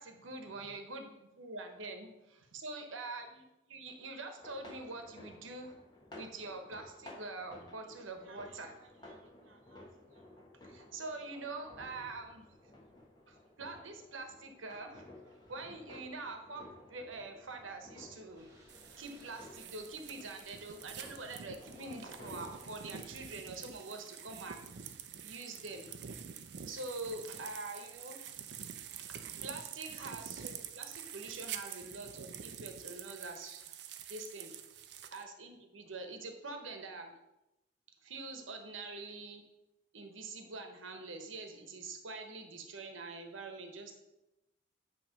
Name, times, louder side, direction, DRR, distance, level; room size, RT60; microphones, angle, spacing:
voice 1, 0.0-2.1 2.5-5.7 6.1-10.2 10.6-12.5 13.3-16.6 16.9-18.5 19.0-24.7 25.2-25.9 26.7-28.6 28.9-29.0 29.4-33.6 34.1-37.1 38.0-39.4 39.9-43.9, right 3 dB, 85° right, 5 dB, 1.0 m, -45 dB
sound 1, 4.4-22.7, left 1 dB, 20° left, 1.1 m, -55 dB
sound 2, 18.3-23.4, right 1 dB, 15° right, 1.4 m, -63 dB
Bike On Grass OS, 18.7-35.2, right 8 dB, 60° right, 0.5 m, -47 dB
8.7 x 3.1 x 5.7 m, 0.93 s
head